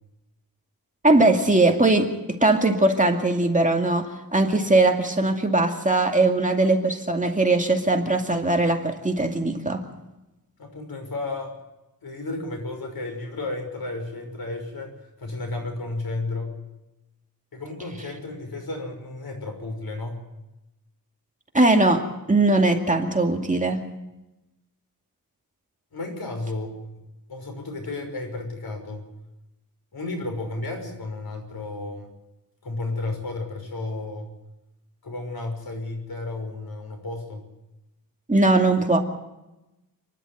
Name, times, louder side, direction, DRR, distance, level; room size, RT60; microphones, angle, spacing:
voice 1, 1.0-2.1 2.4-9.8 21.5-23.8 38.3-39.0, right 2 dB, 20° right, 3 dB, 2.3 m, -20 dB
voice 2, 10.6-11.5 12.0-14.9 15.2-16.5 17.5-20.2 25.9-26.8 27.3-29.1 29.9-32.1 32.6-34.3 35.0-37.5, left 2 dB, 85° left, 3 dB, 6.1 m, -32 dB
29.0 x 11.5 x 8.0 m, 0.97 s
wide cardioid pair, 120°, 36 cm